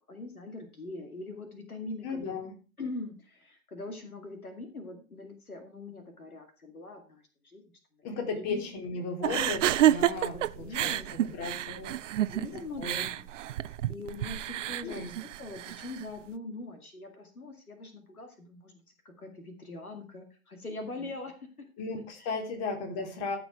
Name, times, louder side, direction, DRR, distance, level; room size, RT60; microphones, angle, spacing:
voice 1, 0.1-2.4 2.8-7.6 8.3-8.7 10.3-11.4 12.3-13.3 13.6-21.3 22.2-22.4, left 2 dB, 85° left, 6 dB, 2.3 m, -42 dB
voice 2, 2.0-2.5 8.0-12.1 12.5-13.2 14.8-15.2 21.8-23.4, left 4 dB, 35° left, 4 dB, 3.5 m, -36 dB
sound 1, 9.2-16.1, right 12 dB, 60° right, 0.7 m, -29 dB
14.0 x 6.1 x 4.7 m, 0.35 s
figure-of-eight pair, 105°, 42 cm